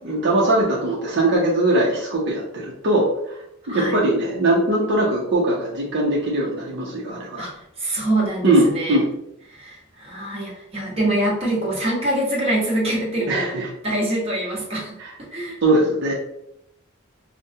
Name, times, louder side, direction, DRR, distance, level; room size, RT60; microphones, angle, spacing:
voice 1, 0.0-3.4 3.7-7.4 8.4-9.1 13.3-13.7 15.0-15.1 15.6-16.1, right 1 dB, 60° right, -3 dB, 0.7 m, -20 dB
voice 2, 3.7-4.0 7.4-9.0 9.5-13.6 13.8-14.9 15.3-15.6, right 1 dB, 30° right, -4 dB, 1.2 m, -24 dB
5.0 x 2.1 x 2.8 m, 0.76 s
head